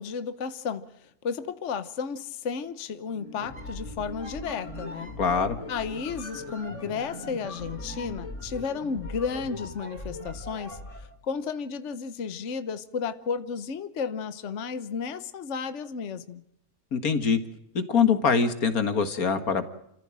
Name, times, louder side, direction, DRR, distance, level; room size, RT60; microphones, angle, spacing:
voice 1, 0.0-5.1 5.7-16.4, left 6 dB, 55° left, 1.3 m, -33 dB
sound 1, 2.9-10.7 11.2-11.3, left 2 dB, 80° right, 6.0 m, -47 dB
sound 2, 3.3-11.1, left 1 dB, 20° left, 3.8 m, -40 dB
voice 2, 5.2-5.6 16.9-17.4 17.7-19.7, left 6 dB, 85° left, 2.2 m, -23 dB
29.5 x 15.0 x 7.5 m
omnidirectional pair, 1.5 m